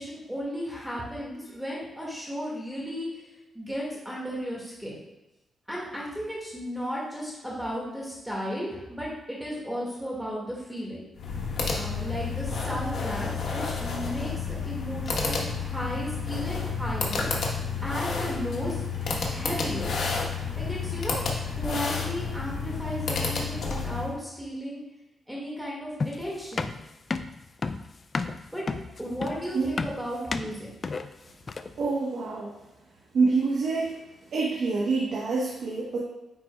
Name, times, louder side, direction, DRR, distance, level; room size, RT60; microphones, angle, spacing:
voice 1, 0.0-3.1 3.5-5.0 5.7-11.0 11.7-17.3 17.8-18.8 19.3-19.9 20.6-21.2 21.6-24.8 25.3-26.7 28.5-28.6 29.0-30.7, equal, 5° right, -5 dB, 2.0 m, -34 dB
sound 1, 11.1-24.2, left 5 dB, 65° left, 1.2 m, -30 dB
sound 2, 26.0-31.8, left 4 dB, 40° left, 0.4 m, -32 dB
voice 2, 31.8-32.5 33.1-34.0 34.3-36.0, right 4 dB, 70° right, -4 dB, 1.1 m, -26 dB
9.9 x 4.3 x 2.3 m, 1.0 s
cardioid pair, 80°, 0 cm